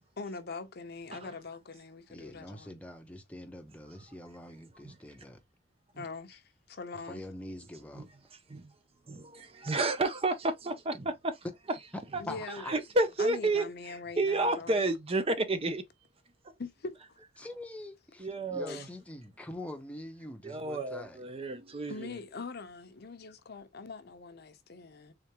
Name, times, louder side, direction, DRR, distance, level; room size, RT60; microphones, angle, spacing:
voice 1, 0.2-2.8 5.9-7.2 12.2-12.7 13.2-14.9 16.6-17.2 18.7-18.9 21.9-25.1, left 4 dB, 55° left, 0.7 m, -42 dB
voice 2, 2.1-5.4 7.1-8.1 12.3-12.7 17.4-21.2, left 1 dB, 5° left, 0.7 m, -44 dB
voice 3, 9.1-11.4 12.7-13.6 14.2-15.8 18.2-18.8 20.4-22.1, right 2 dB, 30° right, 0.6 m, -30 dB
3.7 x 3.3 x 2.9 m
head